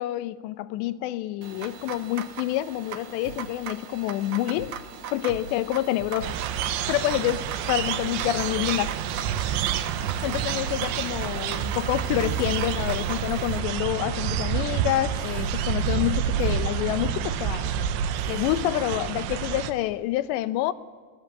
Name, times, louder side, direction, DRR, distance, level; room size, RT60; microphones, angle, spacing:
voice 1, 0.0-4.8 5.1-6.4 6.9-8.9 10.2-17.7 18.3-20.7, left 14 dB, 80° left, 2.9 m, -27 dB
sound 1, 1.4-13.6, right 8 dB, 65° right, 2.0 m, -39 dB
sound 2, 3.2-8.8 9.1-18.8, right 3 dB, 40° right, 4.4 m, -44 dB
sound 3, 6.2-19.7, right 8 dB, 85° right, 3.4 m, -28 dB
25.0 x 19.0 x 7.3 m
omnidirectional pair, 5.0 m